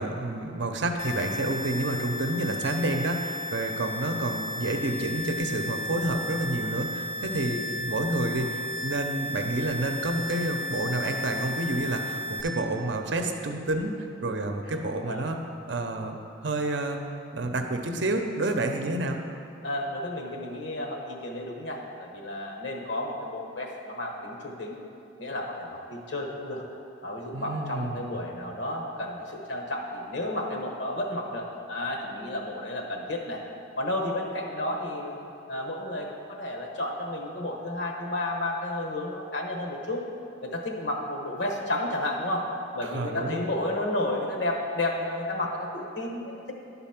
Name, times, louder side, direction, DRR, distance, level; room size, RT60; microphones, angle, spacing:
voice 1, 0.0-15.4 15.7-16.2 16.4-17.0 17.3-19.2 27.3-28.1 42.8-43.4, right 2 dB, 65° right, 5 dB, 0.6 m, -29 dB
sound 1, 1.0-12.4, left 1 dB, 25° right, 0.6 m, -34 dB
voice 2, 19.6-24.8 25.2-26.6 27.0-33.4 33.8-40.0 40.4-42.4 42.7-46.5, left 1 dB, 70° left, 0 dB, 1.1 m, -32 dB
11.5 x 4.0 x 5.8 m, 2.7 s
head